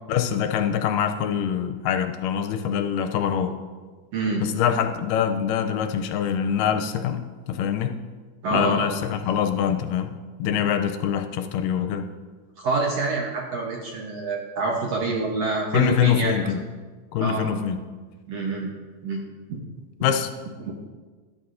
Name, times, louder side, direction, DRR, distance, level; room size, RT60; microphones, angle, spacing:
voice 1, 0.1-3.5 4.4-8.0 8.5-10.1 10.4-12.1 15.7-16.6 17.1-17.8 20.0-20.3, left 8 dB, 80° left, 8 dB, 2.1 m, -24 dB
voice 2, 4.1-4.4 8.4-9.0 12.6-16.4 17.2-17.5 18.3-18.7 19.0-19.2 19.5-19.6 20.6-20.7, right 3 dB, 70° right, -1 dB, 1.6 m, -26 dB
13.5 x 11.5 x 2.6 m, 1.4 s
omnidirectional pair, 4.0 m